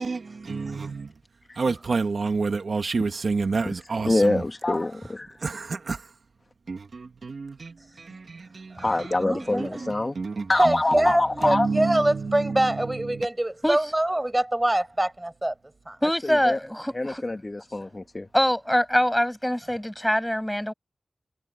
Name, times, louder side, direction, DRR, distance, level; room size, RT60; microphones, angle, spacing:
voice 1, 0.0-1.1 1.6-4.4 5.4-6.1 6.7-9.1 9.6-11.1 11.4-13.3, right 4 dB, 75° right, 2.0 m, -30 dB
voice 2, 4.0-5.4 8.8-10.1 10.5-11.7 16.2-16.6 16.9-18.3, left 2 dB, 30° left, 1.6 m, -25 dB
voice 3, 8.7-9.9 10.6-15.5 15.9-16.0, right 1 dB, 15° right, 7.3 m, -25 dB
voice 4, 16.0-17.2 18.3-20.7, equal, 5° left, 6.3 m, -24 dB
wide cardioid pair, 95°, 0 cm